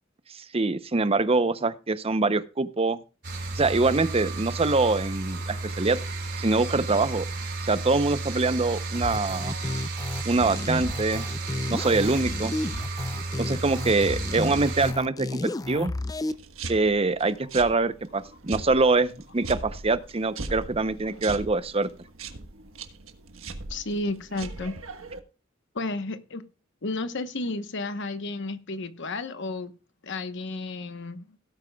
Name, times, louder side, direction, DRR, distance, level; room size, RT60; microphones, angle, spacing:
voice 1, 0.3-3.0 3.6-6.0 6.4-7.2 7.6-9.6 10.2-11.2 11.7-12.5 13.4-15.9 16.7-21.9, right 3 dB, 30° right, 13 dB, 0.7 m, -24 dB
sound 1, 3.2-14.9, right 3 dB, 55° right, 4.1 m, -33 dB
sound 2, 8.9-16.3, left 2 dB, 20° left, 0.4 m, -32 dB
sound 3, 16.3-25.2, right 3 dB, 85° right, 1.4 m, -40 dB
voice 2, 23.7-24.8 25.7-26.4 26.8-29.7 30.0-31.4, left 2 dB, 60° left, 11 dB, 1.0 m, -32 dB
17.5 x 8.9 x 2.3 m, 0.33 s
head